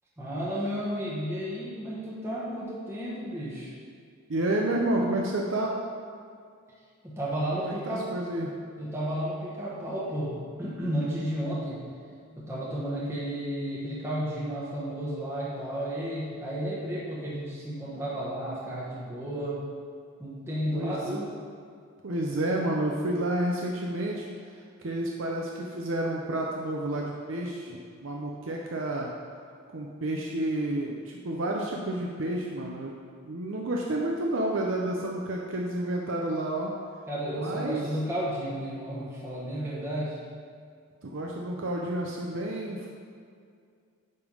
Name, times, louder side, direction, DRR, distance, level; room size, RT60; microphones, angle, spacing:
voice 1, 0.2-3.7 7.0-8.1 8.8-11.8 12.4-19.6 20.2-21.3 37.1-40.2, equal, 10° right, -8 dB, 1.2 m, -32 dB
voice 2, 4.3-5.7 7.7-8.5 20.7-21.2 22.0-29.1 29.7-32.9 33.2-36.7 37.3-37.8 41.0-42.9, right 1 dB, 65° right, -1 dB, 0.6 m, -30 dB
9.5 x 3.5 x 5.4 m, 2.3 s
head